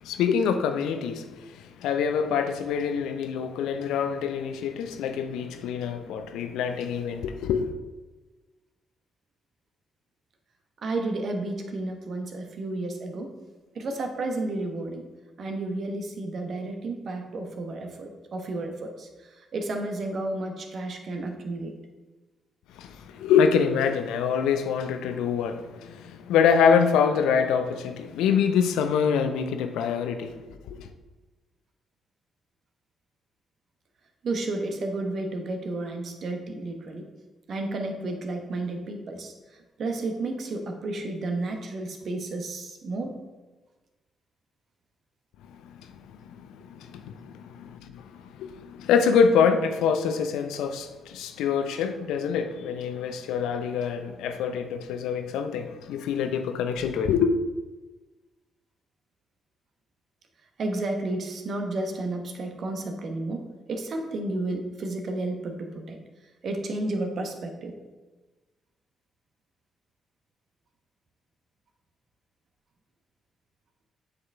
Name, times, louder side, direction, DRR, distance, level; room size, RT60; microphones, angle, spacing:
voice 1, 0.0-7.7 22.7-30.9 45.6-57.3, left 6 dB, 70° left, 0.5 m, -25 dB
voice 2, 10.8-13.3 13.7-15.1 15.4-21.7 34.2-37.1 37.5-43.2 60.6-66.0 66.4-67.8, right 2 dB, 55° right, 1.1 m, -32 dB
8.0 x 5.5 x 3.5 m
hypercardioid pair, 40°, 0 cm